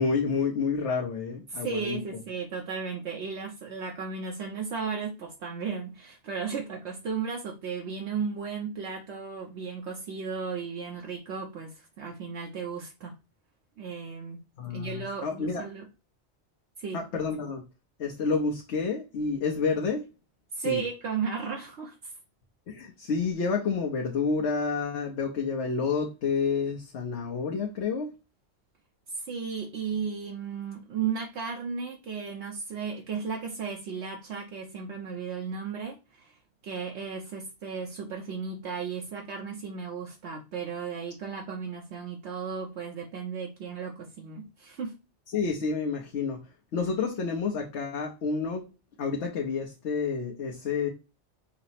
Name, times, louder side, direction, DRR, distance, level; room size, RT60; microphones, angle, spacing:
voice 1, 0.0-2.0 14.6-15.6 16.9-17.6 18.0-20.1 20.6-20.8 22.7-28.1 45.3-46.4 46.7-48.7 49.0-50.9, left 5 dB, 75° left, -1 dB, 1.1 m, -29 dB
voice 2, 1.5-13.1 13.8-14.4 14.7-15.9 16.8-17.0 20.5-22.1 29.1-36.4 36.6-44.9, right 6 dB, 75° right, 0 dB, 1.0 m, -35 dB
5.6 x 2.0 x 4.1 m, 0.29 s
omnidirectional pair, 1.2 m